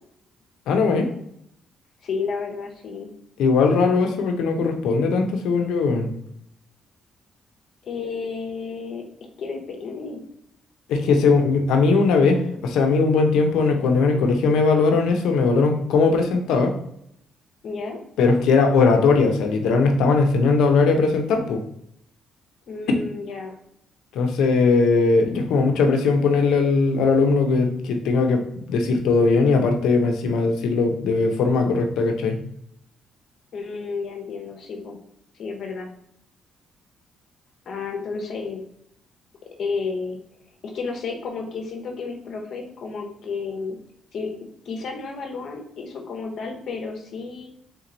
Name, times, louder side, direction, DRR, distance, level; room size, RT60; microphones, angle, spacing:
voice 1, 0.7-1.1 3.4-6.1 10.9-16.7 18.2-21.6 24.1-28.4 28.7-32.4, left 4 dB, 85° left, 4 dB, 0.7 m, -19 dB
voice 2, 2.0-3.1 7.8-9.0 9.4-10.2 17.6-18.0 22.7-23.5 33.5-35.0 35.4-35.9 37.7-38.6 39.6-40.2 40.6-43.8 44.1-44.3 44.6-47.5, left 4 dB, 65° left, 1 dB, 0.9 m, -31 dB
3.7 x 3.0 x 3.8 m, 0.74 s
cardioid pair, 90°, 0 cm